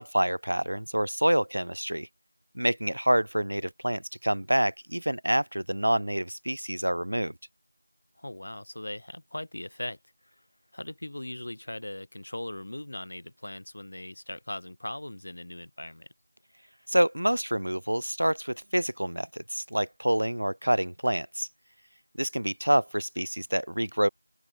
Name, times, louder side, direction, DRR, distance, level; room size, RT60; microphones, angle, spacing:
voice 1, 0.0-2.1 2.5-7.3 16.9-21.5 22.2-24.1, right 1 dB, 50° right, 0.7 m, -27 dB
voice 2, 8.2-10.0 10.7-16.1, left 1 dB, 30° left, 0.8 m, -39 dB
open air
figure-of-eight pair, 175°, 0 cm